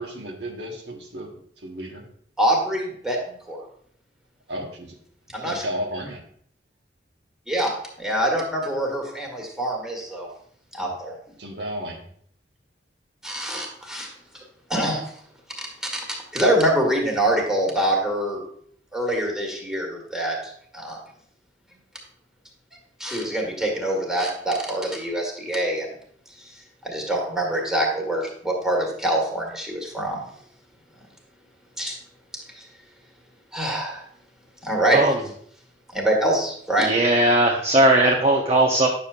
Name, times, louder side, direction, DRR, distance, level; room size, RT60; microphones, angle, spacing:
voice 1, 0.0-2.1 4.5-5.0 5.4-6.2 10.8-10.9 11.4-12.1, equal, 75° right, 1 dB, 1.3 m, -33 dB
voice 2, 2.4-3.6 5.3-5.6 7.5-7.7 8.0-10.3 10.7-11.2 13.2-14.1 14.7-15.0 15.6-18.4 18.9-21.0 23.0-25.9 26.8-30.2 31.8-32.0 32.5-32.6 33.5-34.0 34.6-35.1 35.9-36.9, right 1 dB, 5° right, -1 dB, 1.5 m, -25 dB
voice 3, 36.8-38.9, right 1 dB, 35° right, -1 dB, 0.7 m, -18 dB
9.0 x 6.6 x 2.4 m, 0.63 s
head